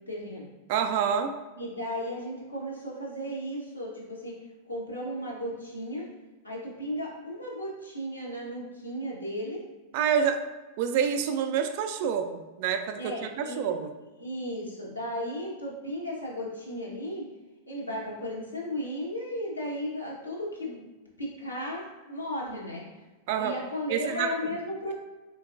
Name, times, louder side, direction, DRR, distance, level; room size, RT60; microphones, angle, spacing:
voice 1, 0.1-0.5 1.6-4.4 4.7-6.1 6.4-9.6 13.0-13.7 14.2-17.3 17.7-20.9 21.2-22.8 23.4-24.9, equal, 85° left, -5 dB, 1.0 m, -35 dB
voice 2, 0.7-1.3 9.9-10.4 10.8-13.9 23.3-23.5 23.9-24.6, right 7 dB, 50° right, 7 dB, 0.3 m, -27 dB
3.8 x 3.5 x 2.5 m, 1.1 s
figure-of-eight pair, 90°, 0 cm